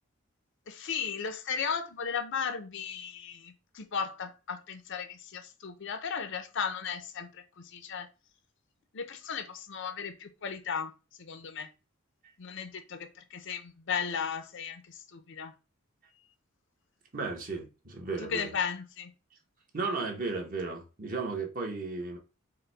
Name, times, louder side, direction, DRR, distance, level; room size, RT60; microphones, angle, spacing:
voice 1, 0.7-8.1 8.9-10.9 11.2-11.7 12.4-15.5 18.2-19.1, left 6 dB, 60° left, 0.6 m, -36 dB
voice 2, 17.1-18.5 19.7-22.2, right 4 dB, 40° right, 1.1 m, -34 dB
4.9 x 2.2 x 4.5 m
head